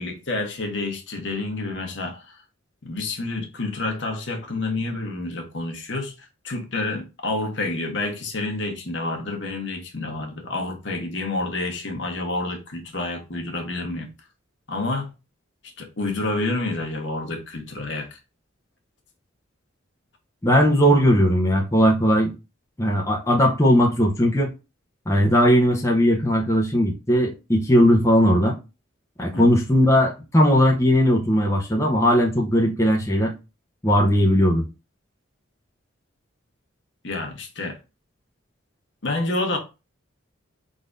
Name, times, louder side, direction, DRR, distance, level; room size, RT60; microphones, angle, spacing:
voice 1, 0.0-2.2 2.8-6.1 6.4-14.1 14.7-15.1 15.8-18.2 29.3-29.5 37.0-37.8 39.0-39.6, left 2 dB, 60° left, 1.3 m, -28 dB
voice 2, 20.4-22.3 22.8-24.5 25.1-28.6 29.2-33.3 33.8-34.7, equal, 15° left, 0.8 m, -18 dB
4.8 x 3.9 x 2.6 m
head